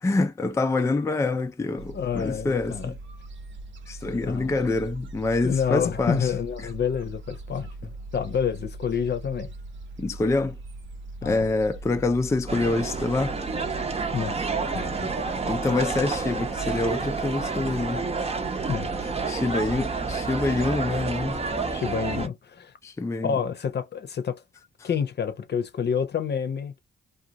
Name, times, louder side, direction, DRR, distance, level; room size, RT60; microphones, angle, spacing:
voice 1, 0.0-2.9 3.9-6.3 10.0-10.6 11.2-13.4 15.4-18.0 19.3-21.4 22.8-23.3, left 3 dB, 15° left, 0.4 m, -26 dB
Gull seagull, 1.8-20.7, right 2 dB, 70° right, 0.8 m, -41 dB
voice 2, 1.9-2.9 4.3-4.5 5.4-7.7 8.1-9.5 11.2-11.5 14.1-15.2 18.7-18.9 21.7-22.7 23.2-24.4 24.8-26.8, left 7 dB, 55° left, 0.7 m, -28 dB
sound 1, 12.5-22.3, right 4 dB, 30° right, 0.7 m, -29 dB
2.5 x 2.3 x 2.8 m
cardioid pair, 80°, 20 cm